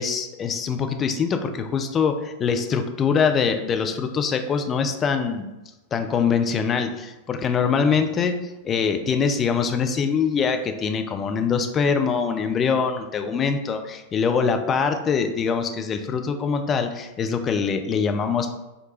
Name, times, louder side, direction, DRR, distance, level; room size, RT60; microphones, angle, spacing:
voice 1, 0.0-5.5 5.9-8.3 8.6-18.5, left 6 dB, 25° left, 6 dB, 0.4 m, -23 dB
4.5 x 2.2 x 3.1 m, 1.0 s
figure-of-eight pair, 90°, 0 cm